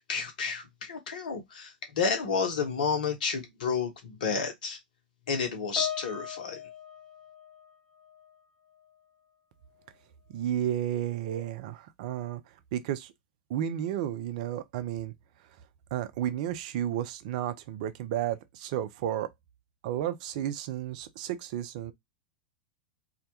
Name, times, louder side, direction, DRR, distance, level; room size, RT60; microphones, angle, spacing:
voice 1, 0.1-4.8 5.3-6.6, left 5 dB, 65° left, 0.7 m, -31 dB
Piano, 5.8-8.4 8.7-9.0 9.8-9.9, left 8 dB, 10° left, 1.0 m, -40 dB
voice 2, 10.3-12.4 12.7-13.1 13.5-15.1 15.9-19.3 19.8-21.9, right 11 dB, 55° right, 0.4 m, -32 dB
2.1 x 2.1 x 2.7 m
figure-of-eight pair, 90°, 5 cm